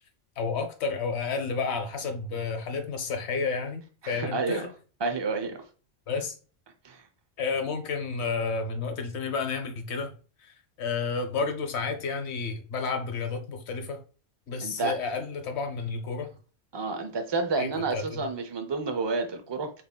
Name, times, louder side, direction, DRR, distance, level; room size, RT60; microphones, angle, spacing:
voice 1, 0.4-4.7 6.1-6.4 7.4-10.1 10.4-14.0 14.5-16.3 17.6-18.2, left 4 dB, 65° left, 1.0 m, -31 dB
voice 2, 4.0-4.7 5.0-5.6 6.8-7.0 14.6-15.0 16.7-19.7, right 3 dB, 35° right, 0.4 m, -30 dB
4.1 x 3.6 x 2.2 m
omnidirectional pair, 1.3 m